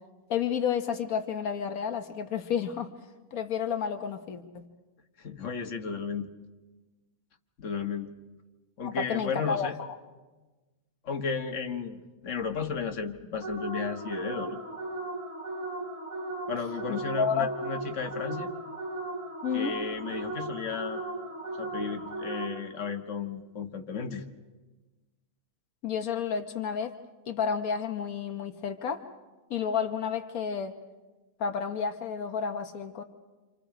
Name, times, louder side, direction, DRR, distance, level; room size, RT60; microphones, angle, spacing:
voice 1, 0.3-2.9 3.3-4.6 8.8-10.0 16.9-17.5 19.4-19.8 25.8-26.9 27.3-29.0 29.5-30.7 31.4-33.0, left 7 dB, 90° left, 5 dB, 1.5 m, -31 dB
voice 2, 5.2-6.3 7.6-8.1 8.8-9.8 11.0-14.6 16.5-18.5 19.5-21.0 21.6-24.3, left 5 dB, 60° left, 4 dB, 1.8 m, -34 dB
sound 1, 13.4-22.8, right 2 dB, 60° right, 4.3 m, -37 dB
28.5 x 27.0 x 5.0 m, 1.2 s
omnidirectional pair, 1.5 m